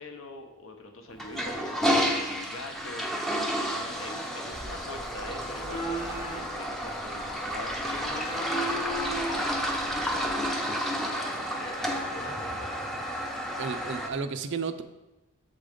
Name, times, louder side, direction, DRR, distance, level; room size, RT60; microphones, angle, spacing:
voice 1, 0.0-13.2, left 2 dB, 60° left, 4 dB, 0.8 m, -45 dB
Toilet flush, 1.1-14.1, equal, ahead, 0.5 m, -31 dB
sound 1, 4.5-10.5, right 1 dB, 20° left, 0.9 m, -38 dB
voice 2, 13.6-14.8, right 5 dB, 55° right, 10 dB, 0.4 m, -33 dB
7.4 x 3.7 x 5.1 m, 1.0 s
head